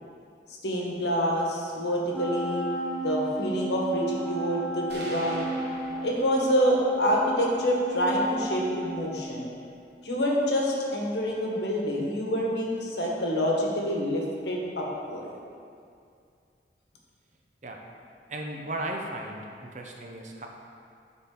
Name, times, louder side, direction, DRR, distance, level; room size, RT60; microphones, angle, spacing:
voice 1, 0.6-2.7 3.0-5.6 6.0-9.5 10.0-15.3, equal, 75° left, -2 dB, 1.2 m, -27 dB
Wind instrument woodwind instrument, 2.1-9.8, right 1 dB, 5° left, 0.5 m, -34 dB
sound 1, 4.9-6.9, right 1 dB, 65° right, 1.1 m, -42 dB
voice 2, 18.3-20.5, right 1 dB, 40° right, 1 dB, 0.7 m, -36 dB
11.0 x 3.8 x 3.8 m, 2.4 s
head